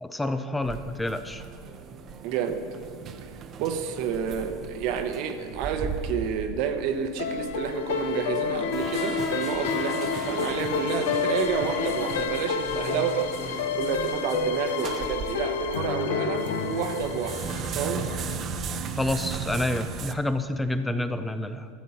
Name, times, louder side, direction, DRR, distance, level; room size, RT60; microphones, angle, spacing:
voice 1, 0.0-1.4 19.0-21.7, left 1 dB, 10° left, 10 dB, 0.5 m, -28 dB
sound 1, 0.6-15.9 16.3-20.1, right 5 dB, 40° right, 0.6 m, -37 dB
voice 2, 2.2-2.6 3.6-13.3 13.7-17.4 17.7-18.0, right 7 dB, 60° right, 7 dB, 1.0 m, -29 dB
sound 2, 7.2-18.4, left 7 dB, 75° left, 0.6 m, -30 dB
sound 3, 8.7-15.5, left 2 dB, 40° left, 1.4 m, -38 dB
13.5 x 7.4 x 4.2 m, 2.3 s
hypercardioid pair, 95°, 0 cm